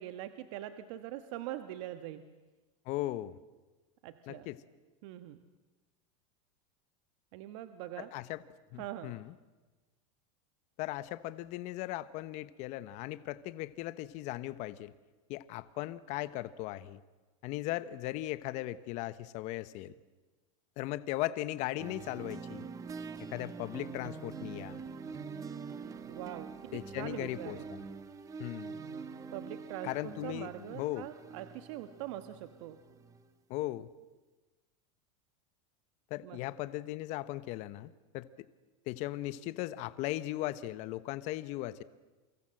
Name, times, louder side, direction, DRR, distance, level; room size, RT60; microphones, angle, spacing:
voice 1, 0.0-2.2 4.0-4.5 5.0-5.4 7.3-8.1 8.8-9.2 26.1-27.7 29.3-32.8 36.2-36.4, right 13 dB, 55° right, 10 dB, 1.3 m, -43 dB
voice 2, 2.9-3.4 4.3-4.6 8.0-8.4 8.7-9.3 10.8-14.9 15.3-17.0 17.4-19.9 20.8-22.6 23.3-24.8 26.7-27.8 28.4-28.8 29.8-31.1 33.5-33.9 36.1-38.3 38.9-41.8, left 16 dB, 40° left, 15 dB, 1.0 m, -38 dB
sound 1, 21.8-33.3, right 5 dB, 20° right, 1.2 m, -45 dB
29.0 x 24.5 x 7.7 m, 1.2 s
supercardioid pair, 160°, 18 cm